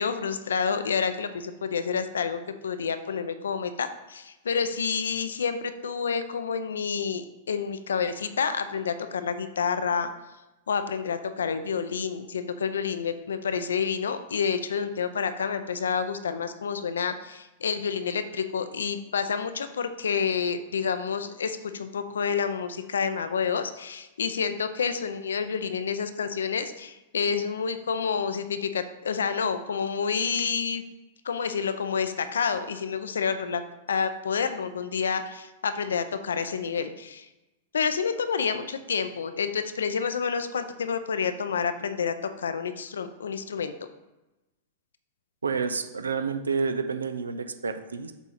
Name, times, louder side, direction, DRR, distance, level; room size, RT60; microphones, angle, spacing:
voice 1, 0.0-10.1 10.7-30.8 31.2-33.6 33.9-37.3 37.7-43.7, left 6 dB, 80° left, 10 dB, 0.5 m, -29 dB
voice 2, 45.4-48.1, right 5 dB, 85° right, 9 dB, 0.5 m, -29 dB
7.0 x 3.5 x 4.2 m, 1.0 s
hypercardioid pair, 105°, 0 cm